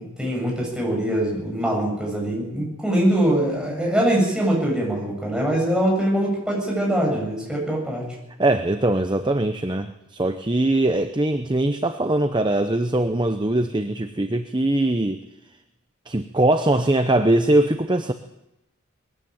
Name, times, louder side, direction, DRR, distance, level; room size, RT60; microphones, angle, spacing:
voice 1, 0.0-8.0, right 1 dB, 5° right, -2 dB, 7.8 m, -23 dB
voice 2, 8.4-15.2 16.1-18.1, right 1 dB, 20° right, 8 dB, 0.7 m, -21 dB
21.0 x 14.5 x 8.9 m, 0.89 s
head